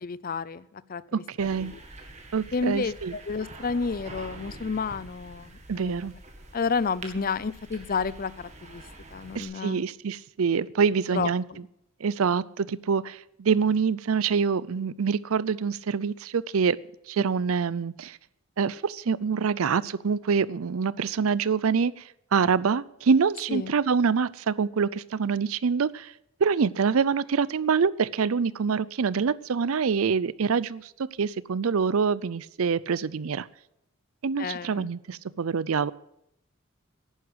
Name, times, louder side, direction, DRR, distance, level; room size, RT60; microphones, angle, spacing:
voice 1, 0.0-1.0 1.6-1.8 2.5-6.1 6.5-8.8 9.1-9.8 11.1-11.6 23.5-23.7 34.4-34.9, left 5 dB, 40° left, 18 dB, 0.5 m, -31 dB
voice 2, 1.1-1.7 2.3-3.2 5.7-6.1 9.3-11.4 12.0-16.8 17.1-18.2 18.6-22.0 22.3-26.1 26.4-30.9 31.2-33.5 34.2-35.9, right 5 dB, 75° right, 19 dB, 0.5 m, -25 dB
sound 1, 1.4-9.4, right 2 dB, 30° right, 2.0 m, -46 dB
11.0 x 9.6 x 8.1 m, 0.80 s
head